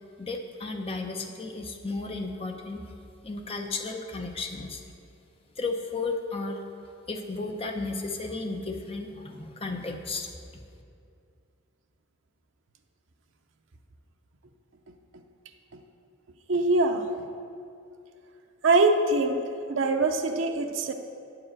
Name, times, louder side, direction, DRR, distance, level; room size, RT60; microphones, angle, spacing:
voice 1, 0.2-2.8 3.2-4.8 5.6-6.6 7.1-10.3, left 3 dB, 30° left, 3 dB, 0.7 m, -34 dB
voice 2, 16.5-17.1 18.6-19.4 19.7-20.9, right 2 dB, 65° right, 4 dB, 0.6 m, -23 dB
8.7 x 4.8 x 7.5 m, 2.5 s
head